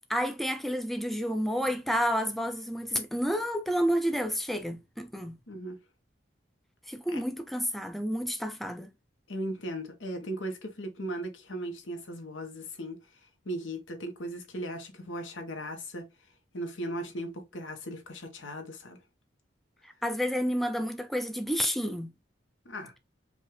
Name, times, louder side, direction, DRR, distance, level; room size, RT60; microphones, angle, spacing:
voice 1, 0.1-5.4 6.9-8.9 19.8-22.1, equal, ahead, 0.3 m, -30 dB
voice 2, 5.5-5.8 7.1-7.2 9.3-13.0 13.4-16.1 16.5-19.0 22.6-23.0, right 1 dB, 85° left, 1.1 m, -37 dB
5.3 x 2.4 x 3.2 m
head